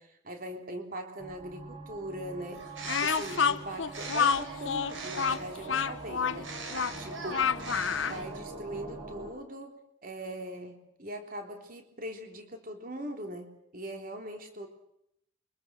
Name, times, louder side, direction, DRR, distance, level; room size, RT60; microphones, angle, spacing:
voice 1, 0.0-2.7 3.0-6.5 7.0-7.5 8.1-14.7, right 1 dB, 45° right, 4 dB, 3.6 m, -41 dB
sound 1, 1.2-9.3, right 3 dB, 25° right, 6.2 m, -44 dB
Bird, 2.5-5.6 6.3-8.5, right 4 dB, 85° right, 5.0 m, -42 dB
Speech, 2.9-8.2, left 6 dB, 75° left, 0.9 m, -29 dB
29.0 x 25.0 x 6.3 m, 0.78 s
head